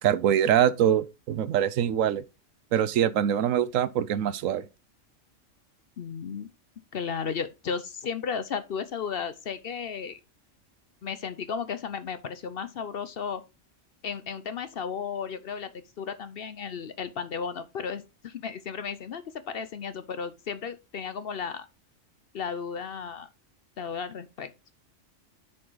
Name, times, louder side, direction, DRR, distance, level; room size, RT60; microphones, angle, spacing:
voice 1, 0.0-2.2 2.7-4.6, right 10 dB, 85° right, 1.1 m, -24 dB
voice 2, 6.0-6.5 6.9-10.2 11.0-13.4 14.0-15.7 16.0-21.7 22.3-23.3 23.8-24.5, left 6 dB, 55° left, 0.8 m, -34 dB
9.7 x 5.2 x 3.8 m
omnidirectional pair, 1.3 m